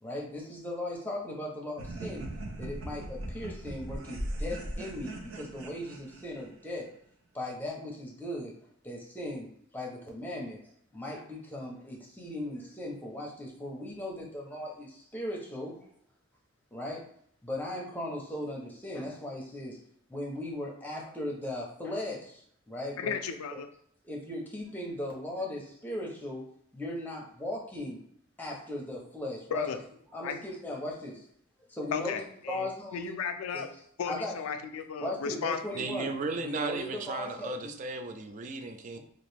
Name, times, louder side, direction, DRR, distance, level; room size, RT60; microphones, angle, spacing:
voice 1, 0.0-2.3 2.6-6.9 7.3-8.5 8.8-9.5 9.7-10.6 10.9-15.7 16.7-17.0 17.4-19.8 20.1-23.2 24.0-26.4 26.7-28.0 28.4-29.7 30.1-31.2 31.7-32.2 32.5-33.2 33.5-33.7 34.1-34.3 35.0-37.7, left 1 dB, 10° left, -2 dB, 0.6 m, -37 dB
sound 1, 1.8-6.6, right 1 dB, 75° right, 0.6 m, -39 dB
voice 2, 23.0-23.7 29.5-29.8 30.2-30.4 31.9-32.7 32.9-33.7 34.0-35.9, left 6 dB, 85° left, 8 dB, 0.3 m, -34 dB
voice 3, 35.7-39.0, right 3 dB, 35° right, 7 dB, 0.3 m, -35 dB
2.9 x 2.5 x 3.3 m, 0.67 s
head